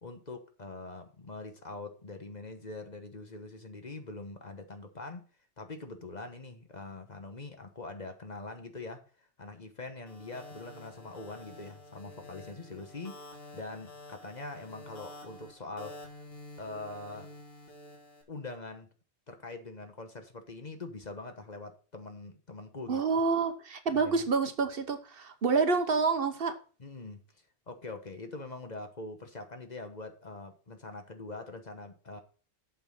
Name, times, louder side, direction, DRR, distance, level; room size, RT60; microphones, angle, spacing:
voice 1, 0.0-5.3 5.6-13.2 13.5-15.9 16.6-17.3 18.3-18.9 19.3-23.0 23.9-24.2 26.8-27.2 27.7-32.2, left 3 dB, 40° left, 6 dB, 1.2 m, -43 dB
sound 1, 10.1-18.2, left 1 dB, 55° left, 2.3 m, -49 dB
voice 2, 22.9-26.5, right 4 dB, 55° right, 9 dB, 1.1 m, -28 dB
8.0 x 6.1 x 5.5 m, 0.38 s
omnidirectional pair, 1.2 m